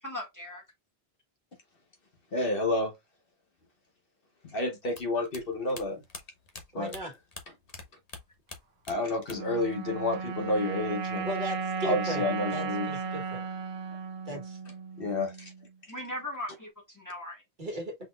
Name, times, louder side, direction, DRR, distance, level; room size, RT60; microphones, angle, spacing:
voice 1, 0.0-0.6 15.9-17.4, left 1 dB, 15° left, 1.8 m, -38 dB
voice 2, 2.3-2.9 4.4-6.0 6.7-7.0 8.9-11.3 11.8-12.9 15.0-15.5, left 2 dB, 55° left, 1.2 m, -30 dB
sound 1, 4.9-7.8 8.1-9.6 9.9-10.6, left 3 dB, 35° left, 1.0 m, -45 dB
voice 3, 6.7-7.1 11.2-12.3 12.5-13.4 14.3-14.6 17.6-17.9, equal, 45° right, 1.4 m, -36 dB
sound 2, 9.3-15.7, right 5 dB, 70° right, 1.0 m, -35 dB
5.5 x 4.0 x 2.3 m
omnidirectional pair, 1.1 m